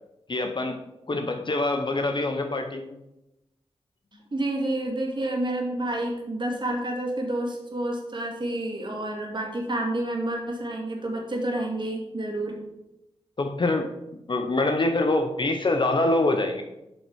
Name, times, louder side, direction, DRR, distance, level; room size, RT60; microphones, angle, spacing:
voice 1, 0.3-0.8 1.1-3.0 13.4-14.0 14.3-16.6, left 2 dB, 45° left, 5 dB, 0.9 m, -25 dB
voice 2, 4.3-12.6, right 1 dB, 45° right, 0 dB, 2.3 m, -29 dB
7.6 x 5.5 x 4.6 m, 0.89 s
cardioid pair, 55°, 11 cm